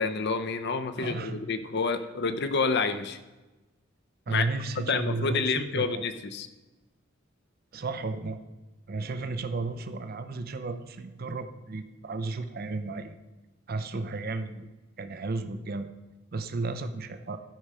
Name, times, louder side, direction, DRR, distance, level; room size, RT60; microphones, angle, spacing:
voice 1, 0.0-3.2 4.3-4.5 4.8-6.5, left 4 dB, 55° left, 10 dB, 0.7 m, -28 dB
voice 2, 1.0-1.4 4.3-6.0 7.7-8.4 8.9-13.2 13.7-14.7 15.0-15.9 16.3-17.4, right 3 dB, 45° right, 10 dB, 0.5 m, -33 dB
12.0 x 5.5 x 4.8 m, 1.1 s
head